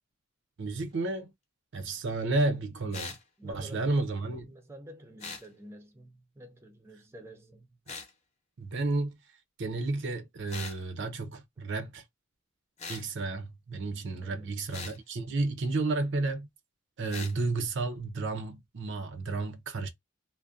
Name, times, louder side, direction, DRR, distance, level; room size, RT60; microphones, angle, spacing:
voice 1, 0.6-1.3 1.7-3.2 3.4-4.5 8.6-9.2 9.6-12.0 12.9-16.5 17.0-19.9, right 3 dB, 60° right, 0.6 m, -32 dB
voice 2, 2.5-3.1 3.4-4.0 4.5-7.8 14.2-14.6, right 1 dB, 10° right, 0.5 m, -50 dB
sound 1, 2.9-3.2 5.2-5.5 7.9-8.1 10.5-10.8 12.8-13.1 14.7-15.0 17.1-17.3, left 4 dB, 35° left, 0.7 m, -40 dB
2.5 x 2.1 x 2.4 m
head